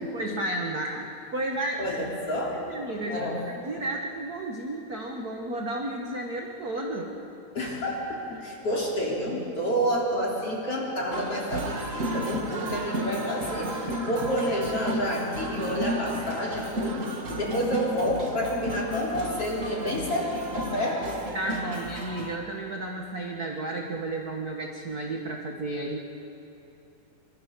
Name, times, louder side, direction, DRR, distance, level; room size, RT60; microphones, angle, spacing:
voice 1, 0.1-1.9 2.6-7.2 21.3-26.0, right 1 dB, 50° right, 1 dB, 1.1 m, -32 dB
voice 2, 1.8-2.6 3.0-3.4 7.5-21.2, equal, 40° left, -4 dB, 4.4 m, -29 dB
sound 1, 11.1-22.4, right 1 dB, 35° right, 1.4 m, -33 dB
26.0 x 24.0 x 6.7 m, 2.9 s
omnidirectional pair, 4.1 m